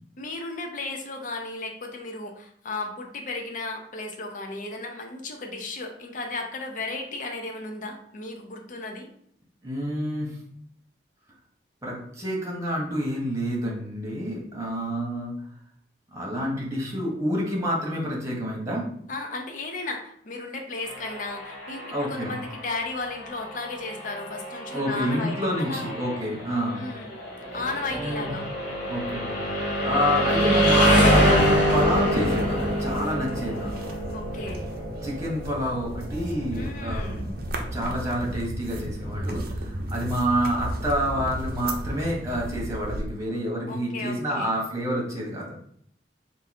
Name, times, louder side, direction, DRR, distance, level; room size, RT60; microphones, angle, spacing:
voice 1, 0.2-9.1 19.1-25.9 26.7-27.1 27.5-28.4 34.1-34.7 36.5-37.3 43.7-44.5, left 3 dB, 45° left, 3 dB, 0.6 m, -34 dB
voice 2, 9.6-10.3 11.8-15.3 16.1-18.9 21.9-22.4 24.7-26.8 28.0-28.3 28.9-29.4 29.8-33.9 35.0-45.6, equal, 15° right, -2 dB, 1.2 m, -28 dB
sound 1, 20.8-36.6, equal, 70° left, 1.6 m, -26 dB
sound 2, 31.2-43.0, right 1 dB, 55° right, 0.6 m, -33 dB
3.7 x 2.6 x 4.2 m, 0.67 s
head